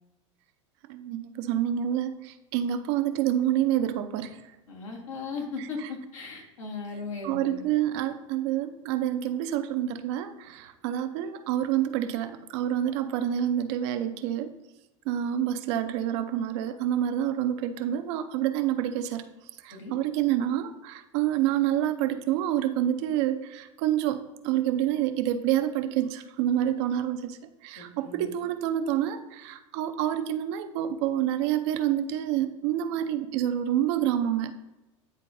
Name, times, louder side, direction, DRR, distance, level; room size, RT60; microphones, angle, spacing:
voice 1, 0.9-4.4 7.2-14.5 15.1-19.2 19.6-27.4 27.6-34.5, right 11 dB, 60° right, 8 dB, 0.6 m, -28 dB
voice 2, 4.7-7.7 19.7-19.9 27.8-28.3, left 4 dB, 80° left, 0 dB, 1.6 m, -37 dB
9.8 x 3.7 x 2.6 m, 0.99 s
hypercardioid pair, 95°, 16 cm